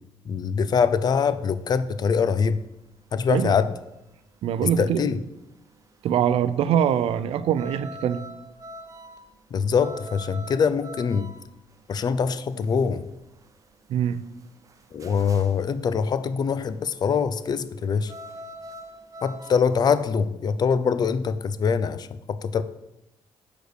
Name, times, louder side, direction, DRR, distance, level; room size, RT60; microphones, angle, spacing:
voice 1, 0.3-2.6 3.1-3.7 4.8-5.2 9.5-11.3 11.9-13.0 14.9-18.1 19.2-22.6, left 6 dB, 40° left, 13 dB, 0.5 m, -23 dB
sound 1, 1.2-20.0, right 1 dB, 30° right, 0.7 m, -45 dB
voice 2, 4.4-5.1 6.0-8.2 13.9-14.2, right 9 dB, 70° right, 13 dB, 0.5 m, -23 dB
6.5 x 5.0 x 6.5 m, 0.92 s
cardioid pair, 110°, 10 cm